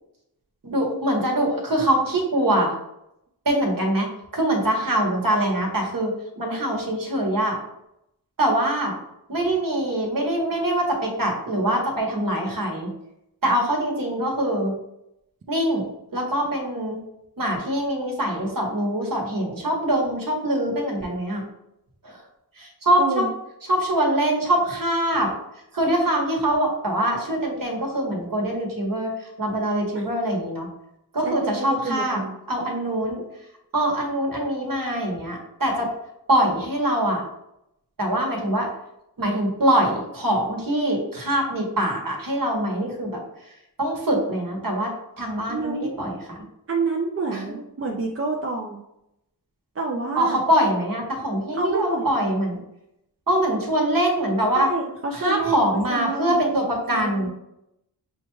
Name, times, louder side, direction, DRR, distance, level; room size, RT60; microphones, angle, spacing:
voice 1, 0.6-2.7 3.4-7.6 8.4-9.0 9.3-12.9 13.4-14.7 15.5-15.8 16.1-17.0 17.4-21.4 22.0-22.2 22.5-23.2 23.6-30.7 31.1-32.2 32.5-33.5 33.7-35.9 36.3-37.3 38.0-38.7 39.2-46.4 47.3-47.5 50.1-52.6 53.3-54.7 55.1-57.3, right 1 dB, 55° right, 0 dB, 1.2 m, -24 dB
voice 2, 23.0-23.3 31.2-32.4 45.5-45.9 46.7-48.8 49.7-50.4 51.5-52.0 54.6-56.6 56.9-57.3, right 3 dB, 35° right, 0 dB, 0.5 m, -28 dB
6.3 x 2.3 x 3.0 m, 0.83 s
wide cardioid pair, 95°, 42 cm